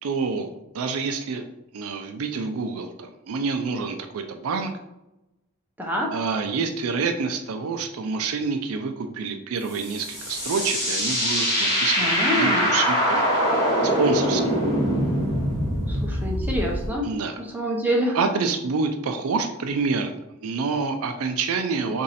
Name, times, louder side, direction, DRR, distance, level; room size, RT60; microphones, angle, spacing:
voice 1, 0.0-1.4 1.7-4.7 6.1-13.2 14.0-14.4 17.0-17.4 18.1-20.2 20.4-22.0, right 4 dB, 70° right, 6 dB, 0.4 m, -27 dB
voice 2, 5.8-6.2 12.0-12.7 15.9-17.1 17.4-18.2, equal, 10° right, -1 dB, 0.6 m, -26 dB
sound 1, 9.7-16.9, equal, 15° left, 1.5 m, -23 dB
3.1 x 2.6 x 4.0 m, 0.92 s
head